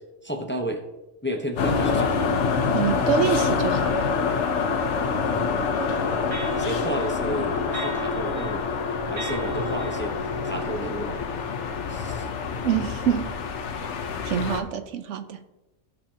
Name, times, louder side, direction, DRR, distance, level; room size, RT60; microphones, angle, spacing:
voice 1, 0.2-0.8 1.2-2.2 5.3-5.7 6.5-8.7 9.1-10.2 10.4-11.2 11.9-12.3, equal, 10° left, 0.8 m, -32 dB
sound 1, 1.6-14.6, left 5 dB, 75° left, 1.1 m, -26 dB
voice 2, 2.7-4.0 12.6-13.3 14.3-15.4, right 8 dB, 80° right, 1.0 m, -26 dB
sound 2, 5.7-11.1, right 1 dB, 65° right, 2.1 m, -35 dB
15.5 x 6.7 x 2.9 m
omnidirectional pair, 1.2 m